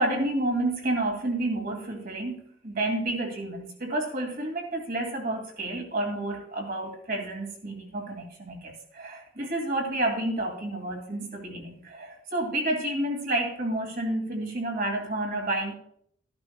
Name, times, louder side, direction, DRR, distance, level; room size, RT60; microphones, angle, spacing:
voice 1, 0.0-15.7, right 1 dB, 45° right, 2 dB, 2.3 m, -30 dB
14.0 x 11.0 x 2.2 m, 0.66 s
head